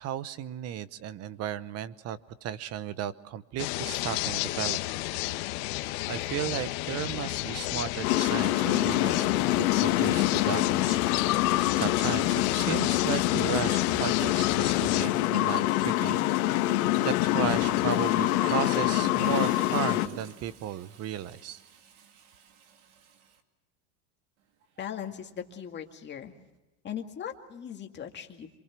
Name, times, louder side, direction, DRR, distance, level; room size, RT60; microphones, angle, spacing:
voice 1, 0.0-4.8 5.8-9.3 9.5-11.0 11.8-16.2 16.7-21.6, right 10 dB, 35° right, 16 dB, 1.0 m, -35 dB
sound 1, 3.6-15.1, left 18 dB, 55° left, 1.4 m, -32 dB
sound 2, 8.0-20.1, left 15 dB, 75° left, 2.1 m, -25 dB
Water tap faucet, 17.8-23.4 24.6-24.8, right 7 dB, 80° right, 2.8 m, -46 dB
voice 2, 24.8-26.3 26.8-28.5, left 9 dB, 25° left, 3 dB, 2.2 m, -39 dB
28.0 x 24.0 x 6.1 m, 1.0 s
supercardioid pair, 145°, 44 cm